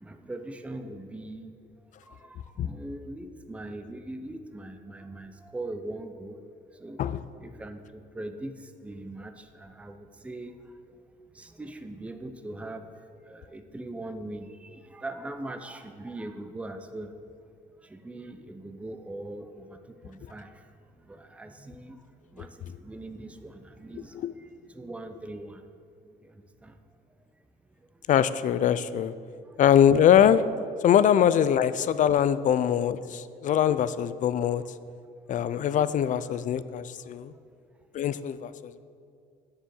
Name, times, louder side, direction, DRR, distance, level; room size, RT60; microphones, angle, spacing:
voice 1, 0.0-1.5 2.1-2.2 2.6-6.3 6.8-7.0 7.4-7.8 8.2-8.5 8.8-9.3 9.6-10.5 11.4-12.8 13.3-14.5 14.9-17.1 17.9-19.8 20.0-20.5 21.1-22.0 22.3-22.5 22.8-24.1 24.8-25.6, right 2 dB, 5° right, 8 dB, 0.6 m, -40 dB
voice 2, 28.1-29.1 29.6-30.4 30.8-34.6 35.3-37.3 37.9-38.8, left 9 dB, 50° left, 15 dB, 0.4 m, -22 dB
7.2 x 6.9 x 7.7 m, 2.3 s
cardioid pair, 110°, 17 cm